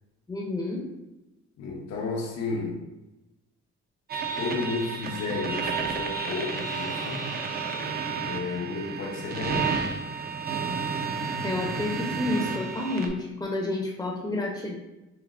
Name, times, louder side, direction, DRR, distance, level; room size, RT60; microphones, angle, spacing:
voice 1, 0.3-0.8 11.4-14.8, left 2 dB, 10° left, -2 dB, 0.6 m, -30 dB
voice 2, 1.6-2.8 4.1-7.3 8.2-10.0, left 3 dB, 65° left, -1 dB, 0.7 m, -32 dB
sound 1, 4.1-13.1, right 5 dB, 30° right, 0.5 m, -31 dB
5.7 x 2.0 x 2.4 m, 1.0 s
cardioid pair, 90°, 30 cm